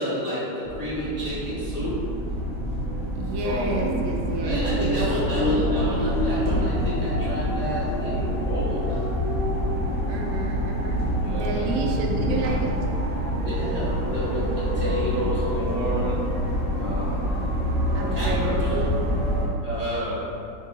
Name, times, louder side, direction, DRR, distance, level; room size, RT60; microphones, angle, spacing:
voice 1, 0.0-2.2 3.4-3.9 4.4-9.1 11.2-11.7 13.4-17.2 18.1-18.8 19.6-20.4, equal, 45° left, -10 dB, 0.4 m, -30 dB
sound 1, 0.7-19.5, equal, 15° right, 0.6 m, -26 dB
voice 2, 3.1-5.0 5.3-5.5 10.1-12.7 17.9-19.1, right 2 dB, 75° right, 0 dB, 1.3 m, -31 dB
4.7 x 2.8 x 3.7 m, 2.5 s
omnidirectional pair, 2.3 m